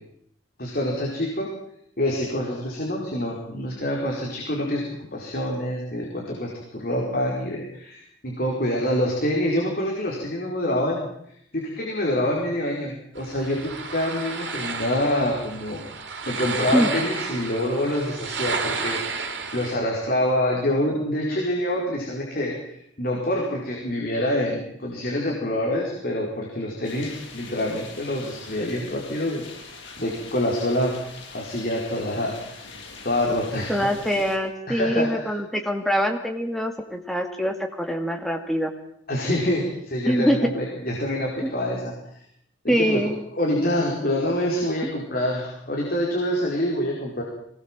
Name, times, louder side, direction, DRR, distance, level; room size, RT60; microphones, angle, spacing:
voice 1, 0.6-1.5 2.0-4.8 5.1-11.1 11.5-15.8 16.3-19.3 19.5-29.7 30.0-30.9 31.3-32.3 33.0-33.9 34.7-35.3 39.1-41.9 42.6-43.0 43.3-47.2, left 1 dB, 50° left, -2 dB, 4.9 m, -26 dB
sound 1, 13.2-19.8, right 4 dB, 65° right, 3.2 m, -32 dB
sound 2, 26.8-34.4, left 4 dB, 85° left, 7.1 m, -43 dB
voice 2, 33.7-38.7 40.1-40.4 41.4-41.5 42.7-43.2 44.8-44.9, equal, ahead, 3 dB, 2.6 m, -24 dB
24.0 x 19.5 x 7.6 m, 0.73 s
head